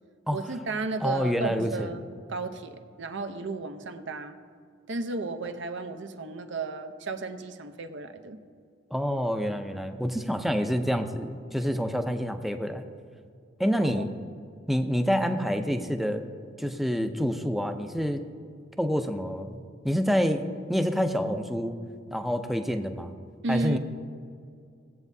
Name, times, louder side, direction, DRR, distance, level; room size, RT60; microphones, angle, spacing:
voice 1, 0.3-4.4 4.9-8.4 13.8-14.0 23.4-23.8, right 3 dB, 65° right, 8 dB, 0.7 m, -34 dB
voice 2, 1.0-1.9 8.9-12.8 13.6-14.1 14.7-16.3 16.6-18.2 18.8-19.6 19.8-21.8 22.1-23.1 23.5-23.8, equal, ahead, 6 dB, 0.5 m, -27 dB
18.0 x 8.2 x 2.7 m, 2.3 s
head